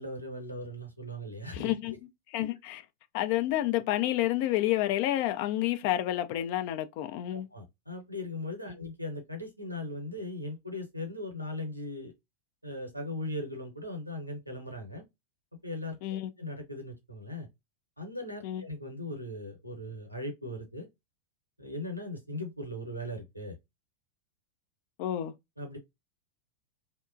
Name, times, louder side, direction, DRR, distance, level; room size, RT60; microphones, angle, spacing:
voice 1, 0.0-2.0 2.4-2.5 7.3-12.1 12.6-15.1 15.6-17.5 18.0-20.9 21.6-23.6 25.6-25.8, left 1 dB, 90° right, 0.8 m, -39 dB
voice 2, 1.5-1.9 2.3-2.8 3.1-7.5 8.7-8.8 16.0-16.3 18.4-18.6 25.0-25.3, left 14 dB, 45° left, 0.3 m, -29 dB
2.8 x 2.1 x 2.4 m
figure-of-eight pair, 90°, 0 cm